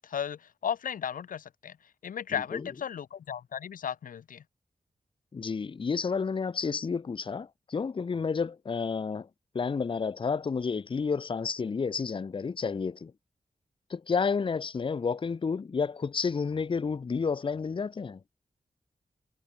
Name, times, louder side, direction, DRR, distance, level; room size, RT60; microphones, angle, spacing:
voice 1, 0.0-1.8 2.0-4.4, left 8 dB, 85° left, 0.6 m, -35 dB
voice 2, 2.3-2.7 5.3-9.3 9.5-13.1 13.9-18.2, left 5 dB, 40° left, 0.6 m, -30 dB
wide cardioid pair, 110°, 14 cm